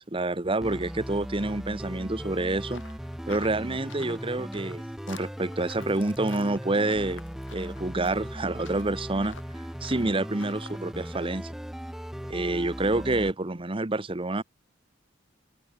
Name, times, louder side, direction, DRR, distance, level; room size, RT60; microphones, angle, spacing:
voice 1, 0.0-2.8 3.3-7.2 7.5-9.4 9.8-11.5 12.3-14.4, right 2 dB, 25° right, 1.1 m, -28 dB
sound 1, 0.6-13.3, equal, ahead, 0.4 m, -38 dB
sound 2, 2.7-10.8, left 5 dB, 65° left, 3.4 m, -50 dB
open air
head